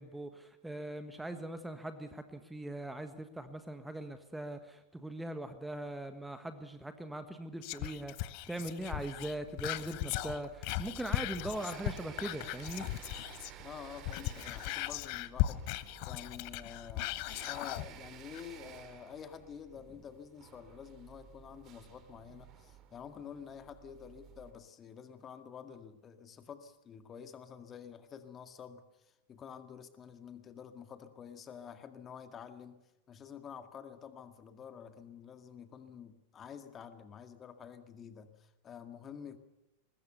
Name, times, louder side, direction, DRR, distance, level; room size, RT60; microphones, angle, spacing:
voice 1, 0.0-12.9, right 1 dB, 5° right, 9 dB, 1.5 m, -41 dB
Whispering, 7.6-13.6 13.9-17.9 18.3-18.4, left 16 dB, 45° left, 0.9 m, -37 dB
sound 1, 8.8-24.5, right 9 dB, 35° right, 2.6 m, -54 dB
voice 2, 13.6-17.1 17.5-32.8 33.1-39.4, left 7 dB, 25° left, 9 dB, 2.0 m, -49 dB
23.0 x 20.5 x 6.9 m, 0.95 s
figure-of-eight pair, 90°, 0 cm